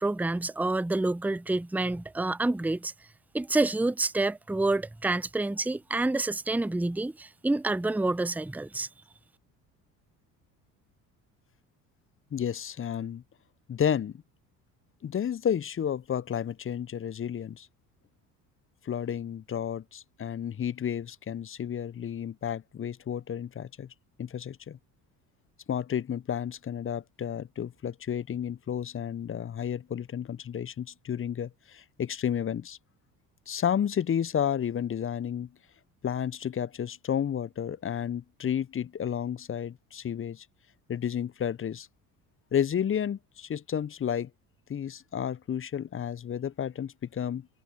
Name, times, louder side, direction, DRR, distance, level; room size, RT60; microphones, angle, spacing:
voice 1, 0.0-2.9 3.3-8.9, right 2 dB, 5° right, 0.9 m, -28 dB
voice 2, 12.3-13.2 13.7-14.2 15.0-17.7 18.8-23.9 24.2-24.8 25.7-32.8 33.5-35.5 36.0-40.5 40.9-41.9 42.5-44.3 44.7-47.5, left 9 dB, 25° left, 0.9 m, -31 dB
figure-of-eight pair, 60°, 48 cm